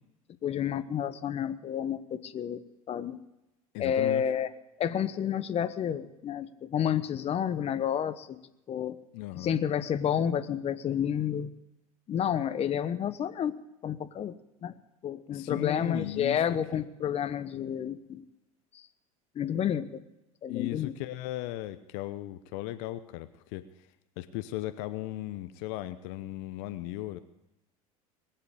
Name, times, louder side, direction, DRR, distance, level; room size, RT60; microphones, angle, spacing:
voice 1, 0.4-2.6 2.9-3.2 3.8-4.5 4.8-8.4 8.7-9.0 9.3-11.5 12.1-13.5 13.8-14.3 14.6-14.7 15.0-18.2 18.7-18.8 19.3-20.0 20.4-20.9, left 9 dB, 35° left, 11 dB, 1.1 m, -30 dB
voice 2, 3.7-4.2 9.1-9.6 15.3-16.4 16.7-16.8 20.5-23.7 24.2-27.2, left 16 dB, 60° left, 11 dB, 0.9 m, -36 dB
21.0 x 8.0 x 8.4 m, 0.91 s
hypercardioid pair, 80°, 19 cm